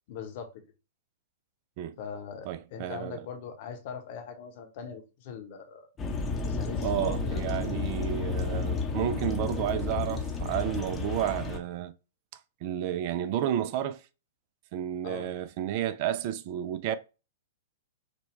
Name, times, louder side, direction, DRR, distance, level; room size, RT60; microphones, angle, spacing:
voice 1, 0.1-0.5 2.0-5.9 6.4-7.4 15.0-15.3, left 7 dB, 50° left, 0.9 m, -41 dB
voice 2, 2.5-3.2 6.8-11.9 12.6-14.0 14.7-17.0, right 11 dB, 45° right, 0.3 m, -31 dB
sound 1, 6.0-11.6, left 4 dB, 20° left, 0.7 m, -32 dB
5.1 x 2.2 x 3.1 m
figure-of-eight pair, 105°, 0 cm